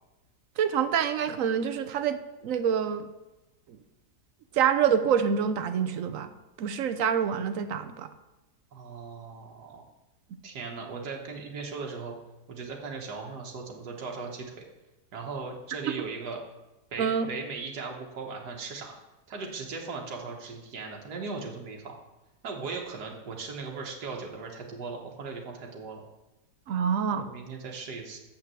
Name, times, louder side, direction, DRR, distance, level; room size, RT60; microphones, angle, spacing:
voice 1, 0.6-3.1 4.5-6.3 6.6-8.1 15.9-16.0 17.0-17.3 26.7-27.3, right 7 dB, 65° right, 10 dB, 1.0 m, -26 dB
voice 2, 8.7-9.8 10.4-12.1 12.5-14.6 15.1-16.4 16.9-18.9 19.3-21.9 22.4-26.0 27.1-28.2, right 4 dB, 90° right, 0 dB, 1.8 m, -38 dB
7.3 x 6.0 x 7.4 m, 1.0 s
omnidirectional pair, 1.7 m